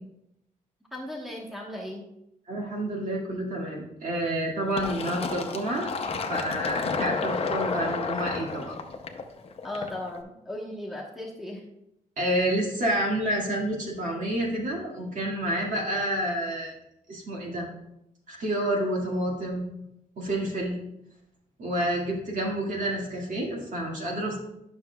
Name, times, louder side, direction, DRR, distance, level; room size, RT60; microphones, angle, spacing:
voice 1, 0.9-2.1 9.6-11.6, left 1 dB, ahead, -2 dB, 1.2 m, -36 dB
voice 2, 2.5-5.9 6.3-8.8 12.2-16.7 17.1-17.7 18.3-19.7 20.2-20.8 21.6-24.4, right 1 dB, 60° right, -2 dB, 2.0 m, -29 dB
Fill (with liquid), 4.8-10.2, left 4 dB, 40° left, 0.7 m, -31 dB
11.0 x 6.2 x 2.3 m, 0.84 s
wide cardioid pair, 150°, 15 cm